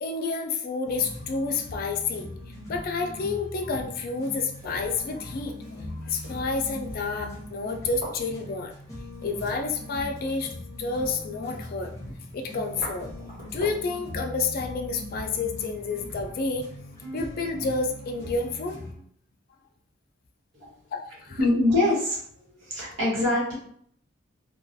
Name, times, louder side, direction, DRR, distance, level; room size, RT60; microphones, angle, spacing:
voice 1, 0.0-2.3 2.7-8.7 9.2-10.5 10.8-13.1 13.5-16.7 17.1-18.8 20.9-21.4, left 4 dB, 50° left, 4 dB, 0.4 m, -30 dB
sound 1, 0.8-18.9, left 1 dB, 15° left, 0.7 m, -40 dB
sound 2, 3.9-13.9, equal, 40° right, 1.2 m, -46 dB
voice 2, 21.4-22.2 22.6-23.5, left 2 dB, 75° right, -6 dB, 1.2 m, -23 dB
2.3 x 2.3 x 2.6 m, 0.64 s
head